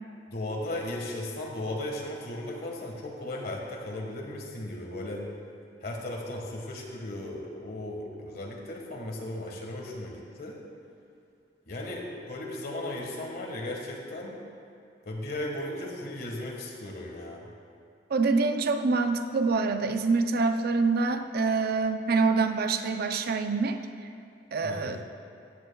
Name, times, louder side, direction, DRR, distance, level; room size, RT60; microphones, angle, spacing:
voice 1, 0.3-5.3 5.8-10.6 11.7-14.3 15.0-17.5 24.6-25.0, left 1 dB, 55° left, -1 dB, 1.5 m, -36 dB
voice 2, 18.1-23.8 24.5-25.0, right 4 dB, 55° right, 7 dB, 0.5 m, -26 dB
15.0 x 9.1 x 2.3 m, 2.5 s
head